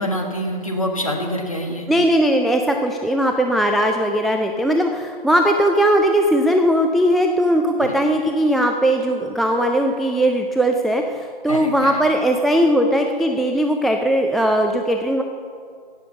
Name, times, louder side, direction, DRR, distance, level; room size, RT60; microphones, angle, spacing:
voice 1, 0.0-1.9 7.8-7.9 11.5-12.0, equal, 35° left, 1 dB, 1.5 m, -26 dB
voice 2, 1.9-15.2, right 1 dB, ahead, 3 dB, 0.3 m, -19 dB
17.5 x 6.7 x 6.9 m, 2.2 s
figure-of-eight pair, 165°, 30 cm